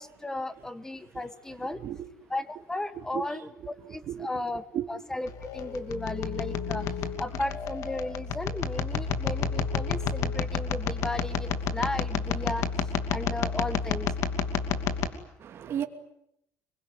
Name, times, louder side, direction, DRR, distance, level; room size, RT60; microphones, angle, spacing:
voice 1, 0.0-1.8 2.3-6.9 7.2-14.1 14.8-14.9, left 2 dB, 10° left, 14 dB, 1.4 m, -35 dB
sound 1, 5.3-15.1, left 5 dB, 65° left, 2.7 m, -30 dB
voice 2, 15.4-15.8, right 10 dB, 45° right, 6 dB, 2.6 m, -32 dB
26.0 x 22.5 x 9.7 m, 0.78 s
cardioid pair, 160°, 6 cm